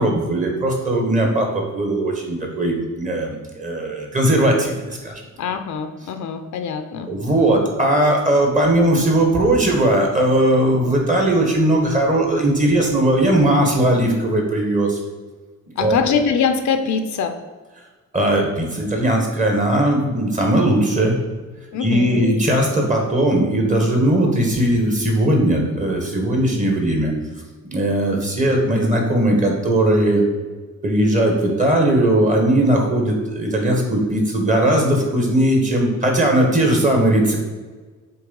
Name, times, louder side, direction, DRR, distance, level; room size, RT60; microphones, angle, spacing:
voice 1, 0.0-5.1 7.1-15.0 15.8-16.0 18.1-21.2 21.8-27.1 27.6-30.2 30.8-37.4, right 1 dB, 25° right, 1 dB, 1.4 m, -18 dB
voice 2, 5.4-7.1 15.8-17.3 21.7-22.3, left 6 dB, 75° left, 8 dB, 0.7 m, -23 dB
7.8 x 3.3 x 5.3 m, 1.3 s
wide cardioid pair, 155°, 29 cm